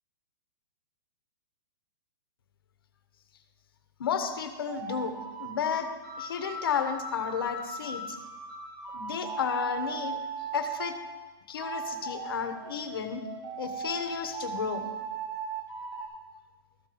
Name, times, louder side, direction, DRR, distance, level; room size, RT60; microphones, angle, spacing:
voice 1, 4.0-5.9 6.2-8.2 8.9-10.2 10.5-11.0 11.5-13.2 13.6-14.9, left 7 dB, 65° left, 8 dB, 1.2 m, -32 dB
sound 1, 4.7-11.0 11.5-16.1, right 4 dB, 55° right, 3.0 m, -38 dB
13.5 x 4.7 x 7.0 m, 1.3 s
hypercardioid pair, 165°, 13 cm